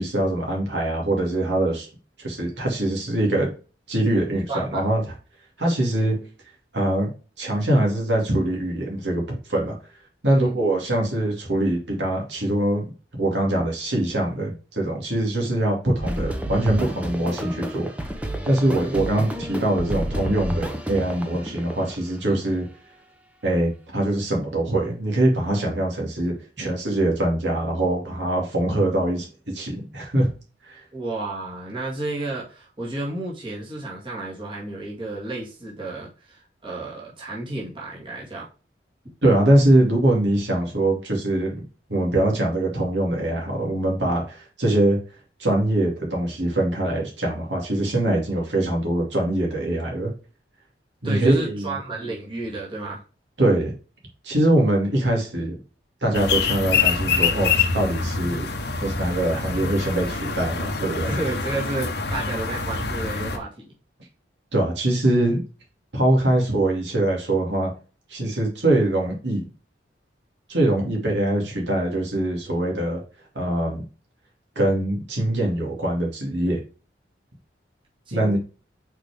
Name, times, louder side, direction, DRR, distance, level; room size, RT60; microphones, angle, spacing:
voice 1, 0.0-1.9 2.2-3.5 3.9-5.0 5.6-6.2 6.7-7.1 7.4-9.7 10.2-12.8 13.2-17.9 18.4-22.7 23.4-30.3 30.6-30.8 39.2-41.6 41.9-45.0 45.4-50.1 51.0-51.8 53.4-53.7 54.2-55.6 56.0-58.5 58.8-61.1 64.5-65.4 65.9-67.7 68.1-69.4 70.5-73.0 73.3-73.8 74.6-76.6 78.1-78.4, right 1 dB, 70° right, -1 dB, 2.4 m, -23 dB
voice 2, 4.5-4.8 10.3-10.6 18.8-19.2 22.2-22.3 30.9-38.5 51.0-53.0 61.0-63.7 78.1-78.4, right 2 dB, 25° right, -5 dB, 2.0 m, -32 dB
sound 1, 16.0-22.1, equal, 10° right, 0.8 m, -30 dB
sound 2, 56.1-63.4, left 5 dB, 60° left, 1.0 m, -25 dB
5.8 x 4.6 x 3.5 m, 0.34 s
head